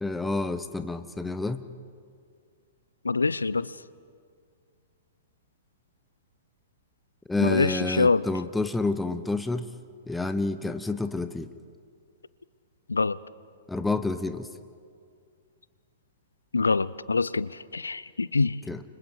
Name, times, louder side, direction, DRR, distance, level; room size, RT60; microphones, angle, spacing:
voice 1, 0.0-1.6 7.3-9.7 10.1-11.5 13.7-14.5 18.7-18.8, left 2 dB, 5° left, 10 dB, 0.9 m, -29 dB
voice 2, 3.0-3.7 7.4-8.2 12.9-13.2 16.5-18.6, left 4 dB, 80° left, 20 dB, 0.6 m, -25 dB
29.5 x 25.5 x 4.8 m, 2.2 s
figure-of-eight pair, 110°, 0 cm